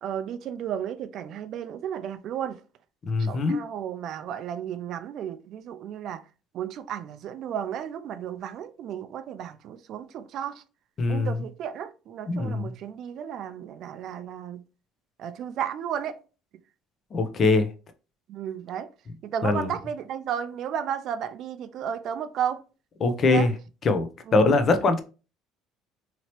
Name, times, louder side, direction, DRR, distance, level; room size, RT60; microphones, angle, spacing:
voice 1, 0.0-2.6 3.2-6.2 6.5-10.6 11.1-14.6 15.2-16.2 18.3-18.9 19.2-22.6 23.2-23.5 24.3-24.5, right 9 dB, 55° right, 0.3 m, -33 dB
voice 2, 3.1-3.6 11.0-11.4 12.3-12.7 17.1-17.7 19.4-19.7 23.0-23.5 23.8-25.0, left 3 dB, 40° left, 0.5 m, -22 dB
2.9 x 2.8 x 2.9 m
cardioid pair, 110°, 0 cm